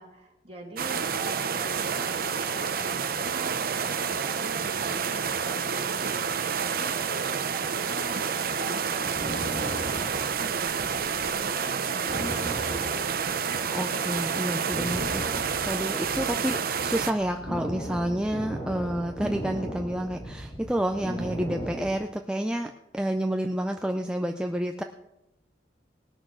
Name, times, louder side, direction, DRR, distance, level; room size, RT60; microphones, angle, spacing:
voice 1, 0.0-8.3 8.6-10.7 11.2-13.9, right 1 dB, 35° right, -1 dB, 2.7 m, -44 dB
sound 1, 0.8-17.1, right 6 dB, 50° right, 0.7 m, -29 dB
sound 2, 9.0-11.3 11.6-11.7 12.1-13.7 14.1-14.3 14.7-22.0, equal, 35° left, 2.7 m, -36 dB
voice 2, 13.7-24.8, right 1 dB, 5° right, 4 dB, 0.4 m, -29 dB
19.0 x 6.4 x 6.3 m, 0.90 s
head